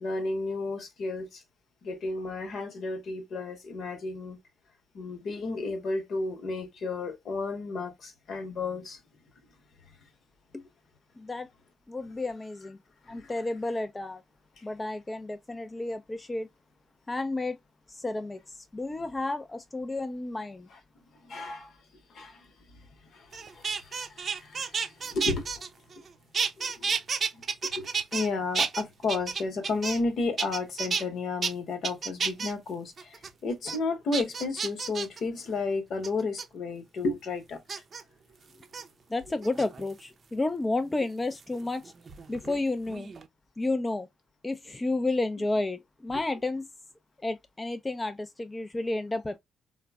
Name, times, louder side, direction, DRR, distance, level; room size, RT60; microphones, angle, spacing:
voice 1, 0.0-1.4 1.8-4.4 4.9-9.0 13.1-13.3 14.6-14.7 20.7-20.8 21.2-21.8 22.1-22.5 23.1-25.7 26.0-26.1 26.6-26.9 27.3-37.6, left 3 dB, 65° left, 0.9 m, -33 dB
voice 2, 11.2-11.5 11.9-12.8 13.1-14.2 14.6-16.5 17.1-17.6 17.9-20.7 39.1-41.9 42.3-43.1 43.6-44.1 44.4-46.7 47.2-49.4, left 2 dB, 25° left, 0.4 m, -31 dB
sound 1, 23.3-26.1 26.3-28.3 28.5-30.1 30.4-31.0 31.4-31.5 31.8-32.5 33.0-33.3 33.7-33.8 34.1-35.2 36.0-36.4 37.7-38.0 38.6-38.8 39.4-40.0 41.4-42.6 42.9-43.3, right 5 dB, 50° right, 0.5 m, -31 dB
3.8 x 2.1 x 2.2 m
hypercardioid pair, 40°, 0 cm